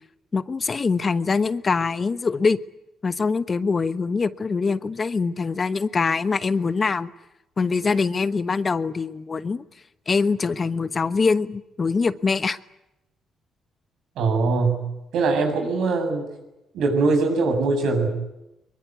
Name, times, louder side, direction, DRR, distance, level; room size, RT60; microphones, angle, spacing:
voice 1, 0.3-2.6 3.0-7.1 7.6-9.6 10.1-12.6, left 4 dB, 35° left, 13 dB, 1.0 m, -23 dB
voice 2, 14.2-14.8 15.1-16.3 16.7-18.1, right 3 dB, 80° right, 5 dB, 7.5 m, -22 dB
23.0 x 22.5 x 9.6 m, 0.93 s
cardioid pair, 90°, 0 cm